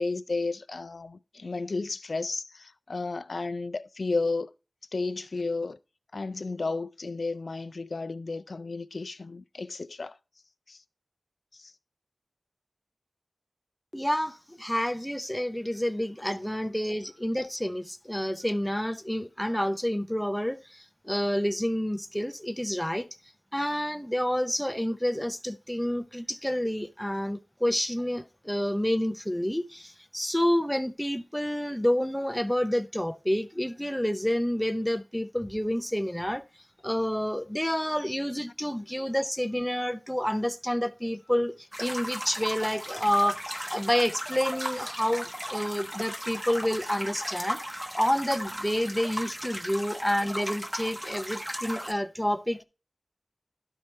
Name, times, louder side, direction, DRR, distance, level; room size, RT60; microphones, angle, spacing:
voice 1, 0.0-4.5 4.9-5.8 6.1-10.2 10.7-10.8 11.5-11.7, left 3 dB, 75° left, 0.4 m, -32 dB
voice 2, 13.9-23.1 23.5-36.4 36.8-43.4 43.7-47.6 48.0-52.6, equal, 5° left, 0.7 m, -29 dB
sound 1, 41.7-51.9, equal, 15° right, 1.0 m, -36 dB
12.0 x 4.5 x 3.2 m
wide cardioid pair, 60°, 0 cm